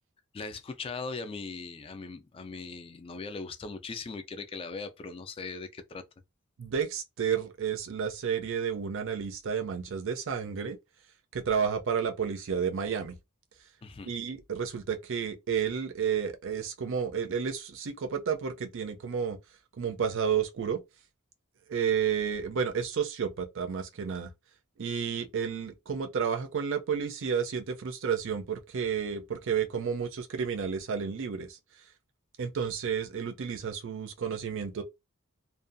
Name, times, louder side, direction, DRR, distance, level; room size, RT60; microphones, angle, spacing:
voice 1, 0.3-6.0 13.8-14.1, left 4 dB, 25° left, 0.3 m, -39 dB
voice 2, 6.6-10.8 11.3-13.2 14.1-19.4 19.8-20.8 21.7-24.3 24.8-31.6 32.4-34.8, right 7 dB, 65° right, 0.5 m, -31 dB
2.6 x 2.2 x 2.5 m
head